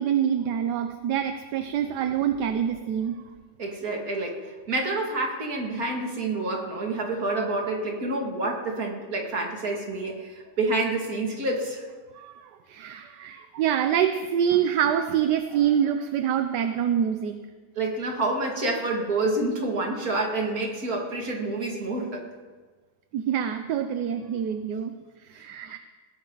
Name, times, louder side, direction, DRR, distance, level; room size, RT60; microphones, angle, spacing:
voice 1, 0.0-3.2 12.1-17.3 23.1-24.9 25.3-25.8, right 9 dB, 80° right, 8 dB, 1.4 m, -26 dB
voice 2, 3.6-11.9 17.8-22.2 25.3-25.5, right 2 dB, 60° right, 0 dB, 2.9 m, -28 dB
20.5 x 16.5 x 4.0 m, 1.4 s
omnidirectional pair, 1.8 m